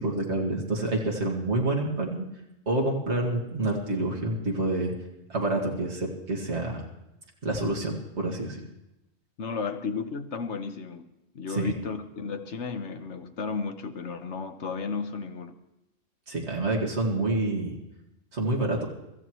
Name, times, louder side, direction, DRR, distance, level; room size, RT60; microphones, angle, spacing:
voice 1, 0.0-2.2 2.7-4.9 5.3-6.8 7.4-8.6 11.5-11.7 16.3-17.8 18.3-18.9, right 2 dB, 65° right, -2 dB, 2.4 m, -28 dB
voice 2, 9.4-11.0 11.3-15.5, left 5 dB, 70° left, 7 dB, 1.3 m, -33 dB
25.0 x 14.0 x 3.1 m, 0.90 s
omnidirectional pair, 1.3 m